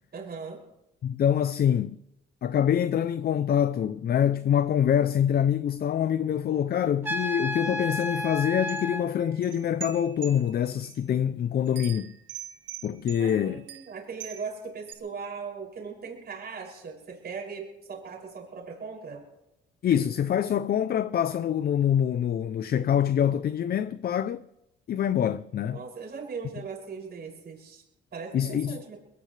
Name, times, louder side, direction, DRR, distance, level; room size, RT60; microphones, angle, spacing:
voice 1, 0.1-0.6 13.2-19.2 25.7-27.8 28.1-29.0, right 5 dB, 55° right, 6.7 m, -39 dB
voice 2, 1.0-2.0 2.4-12.1 12.8-13.6 19.8-24.4 24.9-25.8 28.3-28.8, left 9 dB, 50° left, 0.6 m, -25 dB
Trumpet, 7.0-9.1, left 1 dB, 10° right, 3.3 m, -31 dB
sound 1, 8.0-8.1 8.7-11.0 11.7-14.5 14.9-15.0, right 9 dB, 70° right, 1.8 m, -43 dB
22.0 x 18.5 x 3.3 m
cardioid pair, 90°, 20 cm